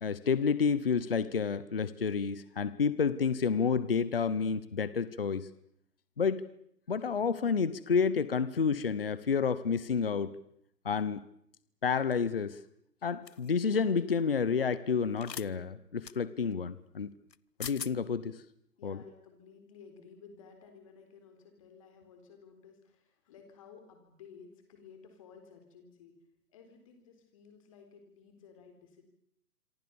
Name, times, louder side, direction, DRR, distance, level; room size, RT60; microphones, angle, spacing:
voice 1, 0.0-5.5 6.2-6.4 6.9-10.3 10.8-11.2 11.8-12.6 13.0-17.1 17.6-18.4 18.8-19.0, left 6 dB, 35° left, 16 dB, 0.9 m, -30 dB
sound 1, 13.3-13.5 15.2-15.5 16.0-16.2 17.3-17.4 17.6-17.9, left 8 dB, 85° left, 1.0 m, -41 dB
voice 2, 18.8-26.1 26.5-29.0, left 6 dB, 20° left, 5 dB, 4.1 m, -55 dB
27.0 x 24.5 x 7.1 m, 0.72 s
hypercardioid pair, 175°, 48 cm